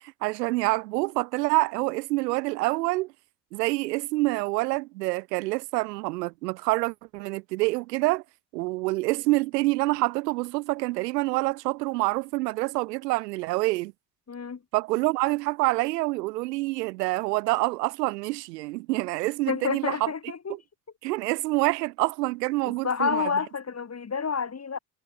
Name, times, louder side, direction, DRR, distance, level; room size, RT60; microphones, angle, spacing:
voice 1, 0.2-3.1 3.5-8.2 8.5-13.9 14.7-20.1 21.0-23.2, right 21 dB, 85° right, 4.8 m, -27 dB
voice 2, 14.3-14.6 19.5-20.6 22.7-24.8, left 6 dB, 30° left, 2.6 m, -29 dB
hypercardioid pair, 55°, 47 cm